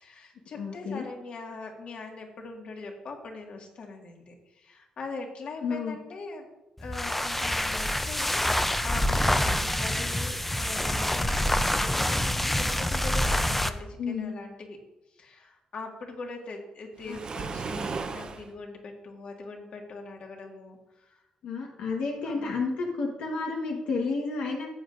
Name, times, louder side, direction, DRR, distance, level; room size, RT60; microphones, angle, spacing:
voice 1, 0.0-6.5 6.8-14.8 15.1-21.2 22.2-22.5, left 3 dB, 60° left, 1 dB, 1.9 m, -42 dB
voice 2, 0.6-1.1 5.6-6.0 14.0-14.3 17.1-17.2 21.4-24.7, left 4 dB, 90° left, -1 dB, 1.3 m, -31 dB
sound 1, 6.8-13.8, left 1 dB, 10° left, 0.5 m, -26 dB
Waves surf, 17.0-18.5, right 4 dB, 40° right, 0.7 m, -35 dB
13.5 x 8.3 x 2.6 m, 0.93 s
cardioid pair, 110°, 2 cm